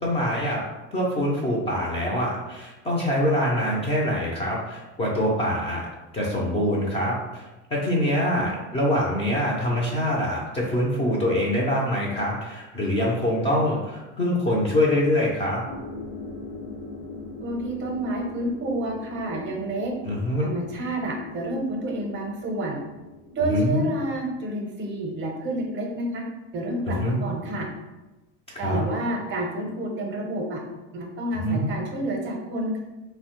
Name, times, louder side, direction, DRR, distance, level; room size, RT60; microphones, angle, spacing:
voice 1, 0.0-0.6 0.9-5.9 6.1-15.6 20.0-20.5 23.5-23.8 26.9-27.2 28.6-28.8 31.3-31.7, equal, 20° left, -4 dB, 0.4 m, -24 dB
sound 1, 15.7-23.8, left 3 dB, 90° left, 0.8 m, -41 dB
voice 2, 17.4-19.9 20.4-22.8 23.3-26.2 26.5-27.7 28.6-30.6 30.9-32.8, right 1 dB, 35° right, 0 dB, 0.6 m, -29 dB
3.0 x 2.1 x 2.9 m, 1.1 s
supercardioid pair, 125°, 35 cm